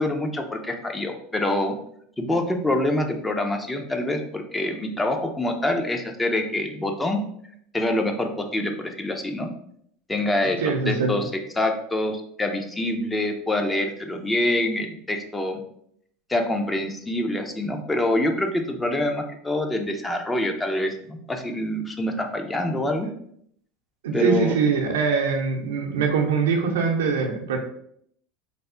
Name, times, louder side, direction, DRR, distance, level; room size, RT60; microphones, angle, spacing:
voice 1, 0.0-1.7 2.2-7.2 7.7-9.5 10.1-11.3 11.6-15.6 16.3-23.1 24.1-24.6, left 1 dB, 15° left, 4 dB, 0.5 m, -25 dB
voice 2, 10.3-11.2 24.0-27.6, right 5 dB, 90° right, 2 dB, 0.6 m, -23 dB
3.3 x 2.0 x 3.7 m, 0.68 s
supercardioid pair, 105°, 0 cm